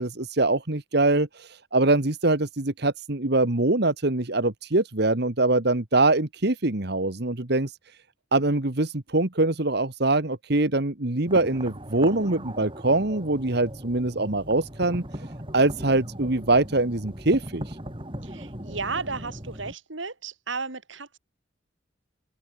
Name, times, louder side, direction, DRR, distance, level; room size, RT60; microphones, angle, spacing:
voice 1, 0.0-7.8 8.3-15.3 15.5-17.8, right 2 dB, 55° right, 1.7 m, -23 dB
sound 1, 11.3-19.7, right 1 dB, 25° right, 6.8 m, -39 dB
voice 2, 18.2-21.2, right 4 dB, 75° right, 2.9 m, -34 dB
open air
head